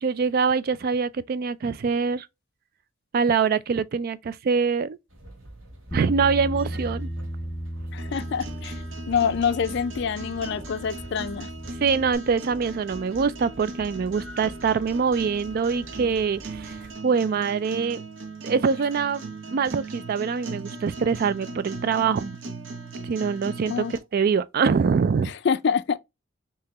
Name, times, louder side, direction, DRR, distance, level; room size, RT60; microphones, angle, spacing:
voice 1, 0.0-2.3 3.1-5.0 5.9-7.1 11.8-16.8 17.0-18.0 18.4-22.4 23.1-23.8 24.1-25.3, right 5 dB, 50° right, 0.3 m, -24 dB
sound 1, 5.1-17.0, right 1 dB, 85° right, 1.2 m, -46 dB
Bass guitar, 5.9-12.2, right 1 dB, 5° left, 0.7 m, -35 dB
voice 2, 7.9-11.5 23.6-23.9 25.2-26.0, left 6 dB, 60° left, 0.4 m, -26 dB
sound 2, 8.0-24.0, right 2 dB, 70° right, 0.9 m, -39 dB
3.6 x 2.8 x 2.9 m
head